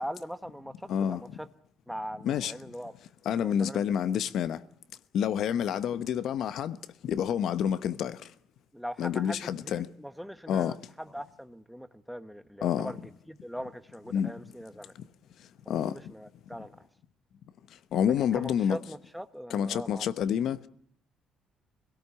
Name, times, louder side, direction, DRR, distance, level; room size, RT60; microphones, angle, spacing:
voice 1, 0.0-1.5 1.9-2.9 3.4-3.9 5.5-5.6 8.7-13.0 13.3-14.9 15.6-16.9 18.3-20.3, equal, ahead, 1.2 m, -41 dB
voice 2, 0.9-1.4 2.2-2.5 3.2-4.6 5.1-6.8 7.0-8.3 9.0-9.9 10.5-10.8 12.6-12.9 14.1-14.5 14.9-15.1 15.4-16.1 17.7-18.8 19.5-20.7, left 9 dB, 70° left, 1.0 m, -29 dB
25.0 x 17.5 x 8.4 m
cardioid pair, 110°, 0 cm